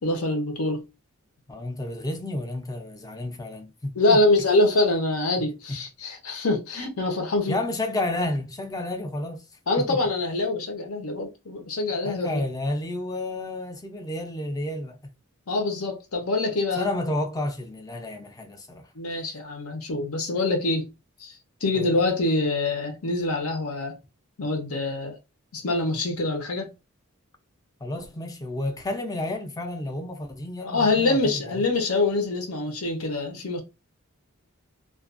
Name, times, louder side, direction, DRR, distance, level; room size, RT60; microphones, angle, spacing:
voice 1, 0.0-0.9 4.0-7.6 9.7-12.4 15.5-16.9 18.9-20.9 21.2-24.0 24.4-25.2 25.5-26.7 30.6-33.6, left 2 dB, 80° left, 0.8 m, -25 dB
voice 2, 1.5-4.2 5.7-5.8 7.5-9.5 9.8-10.0 12.0-15.0 16.8-18.9 21.7-21.9 27.8-31.6, left 1 dB, 15° left, 0.4 m, -31 dB
2.4 x 2.3 x 2.4 m
head